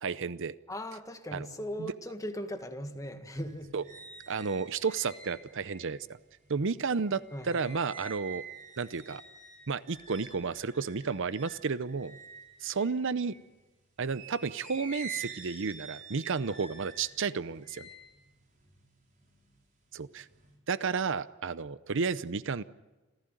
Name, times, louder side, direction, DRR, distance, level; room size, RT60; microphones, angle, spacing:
voice 1, 0.0-0.5 1.3-1.5 1.8-1.9 3.7-3.8 4.3-6.1 6.5-8.4 8.8-9.2 9.7-12.2 12.6-13.3 14.0-17.9 19.9-20.3 20.7-22.6, right 5 dB, 60° right, 0.7 m, -32 dB
voice 2, 0.7-3.7 7.3-7.7, equal, 15° left, 1.8 m, -38 dB
sound 1, 3.4-13.5 14.0-19.6 19.9-20.5, right 4 dB, 40° right, 5.9 m, -48 dB
28.0 x 16.0 x 9.1 m
head